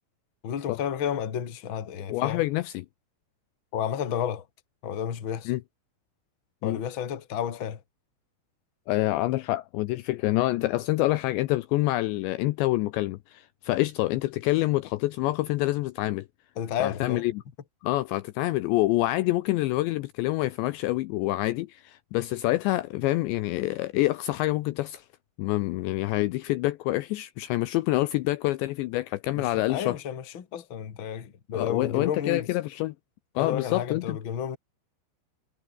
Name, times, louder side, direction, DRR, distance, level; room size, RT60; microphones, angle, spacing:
voice 1, 0.4-2.4 3.7-4.5 4.8-5.5 6.6-7.8 16.6-17.2 29.4-32.5 33.4-34.6, left 8 dB, 65° left, 1.2 m, -31 dB
voice 2, 2.1-2.9 5.5-5.6 6.6-6.8 8.9-16.3 16.8-17.4 17.8-25.1 25.4-30.0 31.5-33.0 33.4-34.2, left 18 dB, 90° left, 2.6 m, -27 dB
omnidirectional pair, 5.9 m